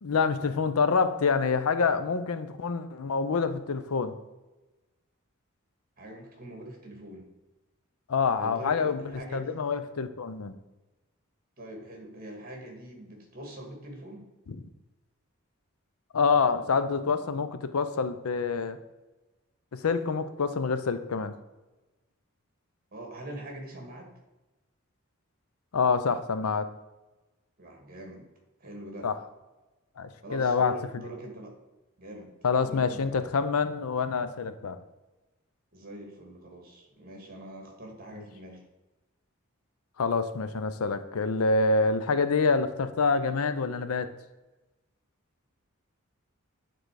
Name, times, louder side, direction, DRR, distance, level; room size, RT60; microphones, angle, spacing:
voice 1, 0.0-4.1 8.1-9.0 9.3-10.5 16.1-18.8 19.7-21.3 25.7-26.7 29.0-29.1 30.0-30.7 32.4-34.8 40.0-44.1, left 4 dB, 85° left, 11 dB, 0.6 m, -26 dB
voice 2, 6.0-7.2 8.4-9.7 11.6-14.3 22.9-24.1 27.6-28.3 28.6-29.1 30.2-31.6 32.0-32.3 32.6-33.2 35.7-38.6, right 1 dB, 45° right, 2 dB, 1.7 m, -43 dB
8.9 x 3.8 x 4.7 m, 1.1 s
head